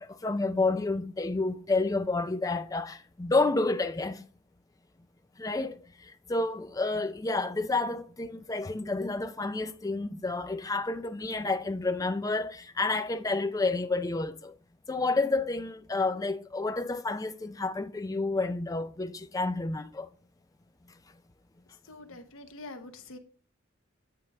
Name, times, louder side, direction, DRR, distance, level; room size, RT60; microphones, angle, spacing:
voice 1, 0.0-4.2 5.4-14.6 14.9-20.1, left 3 dB, 15° left, 0.4 m, -30 dB
voice 2, 21.9-23.2, left 2 dB, 85° left, 1.0 m, -45 dB
8.6 x 4.6 x 3.4 m
head